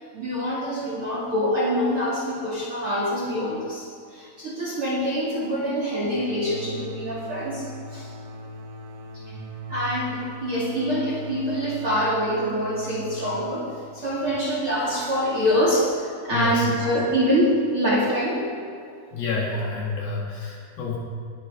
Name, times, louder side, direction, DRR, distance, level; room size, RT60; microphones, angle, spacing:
voice 1, 0.1-8.1 9.1-9.2 9.7-18.4, equal, 40° right, -6 dB, 2.2 m, -25 dB
sound 1, 6.0-15.5, equal, 65° right, 2.2 m, -40 dB
voice 2, 16.3-16.7 19.1-21.0, left 3 dB, 60° left, -3 dB, 3.0 m, -28 dB
20.5 x 11.0 x 3.7 m, 2.5 s
omnidirectional pair, 5.4 m